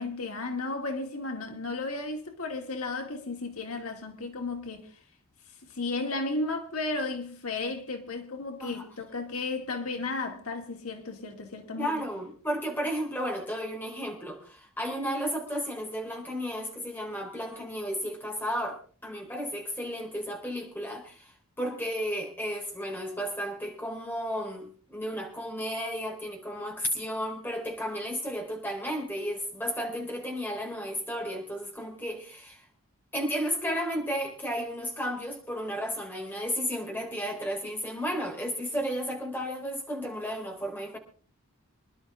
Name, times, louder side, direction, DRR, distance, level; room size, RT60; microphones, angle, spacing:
voice 1, 0.0-4.9 5.7-11.9, left 3 dB, 85° left, 2.6 m, -34 dB
voice 2, 11.8-21.3 21.6-32.6 33.1-41.0, equal, 10° left, 4.2 m, -33 dB
26.0 x 11.5 x 3.6 m
head